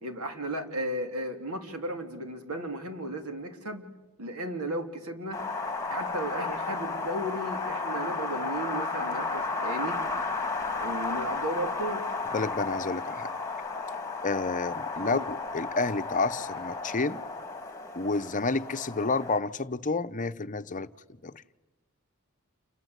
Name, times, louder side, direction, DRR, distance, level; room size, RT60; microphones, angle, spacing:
voice 1, 0.0-3.8 4.2-5.4 5.9-10.0 10.8-12.0 15.0-15.2, right 1 dB, 90° right, 3.4 m, -35 dB
Wind, 5.3-19.4, left 3 dB, 15° left, 2.3 m, -33 dB
voice 2, 12.3-13.3 14.2-17.2 17.9-20.9 21.2-21.3, left 3 dB, 35° left, 0.8 m, -30 dB
29.5 x 23.0 x 8.2 m
head